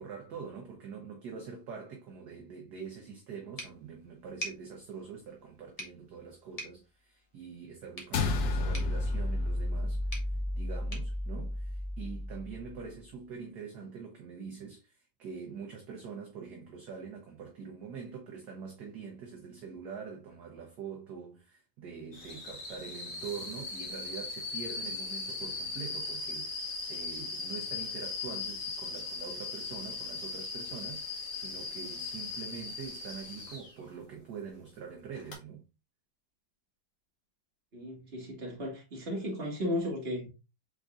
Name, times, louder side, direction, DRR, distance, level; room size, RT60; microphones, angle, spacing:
voice 1, 0.0-10.3 10.6-35.6, right 6 dB, 60° right, 1.2 m, -44 dB
sound 1, 3.6-12.3, equal, 25° left, 0.8 m, -48 dB
sound 2, 8.1-12.7, left 2 dB, 75° left, 0.7 m, -32 dB
sound 3, 22.1-33.7 35.2-35.3, left 4 dB, 45° left, 1.4 m, -39 dB
voice 2, 37.7-40.3, left 1 dB, 30° right, 1.8 m, -35 dB
4.9 x 3.8 x 2.4 m
omnidirectional pair, 2.2 m